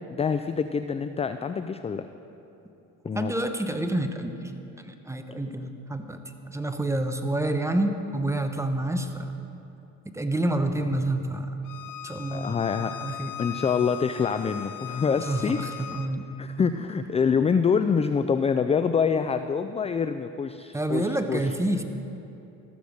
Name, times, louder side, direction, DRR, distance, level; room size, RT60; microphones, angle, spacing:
voice 1, 0.2-2.1 3.0-3.3 12.3-12.9 13.4-15.6 16.4-21.4, left 6 dB, 20° left, 10 dB, 0.3 m, -26 dB
voice 2, 3.1-4.5 4.8-6.2 6.5-9.3 10.1-11.5 12.0-12.6 13.0-13.3 15.0-16.3 20.7-21.8, right 1 dB, 10° right, 6 dB, 1.0 m, -28 dB
Bowed string instrument, 11.6-16.1, left 11 dB, 60° left, 0.7 m, -39 dB
13.5 x 6.9 x 6.4 m, 2.9 s
supercardioid pair, 65°, 37 cm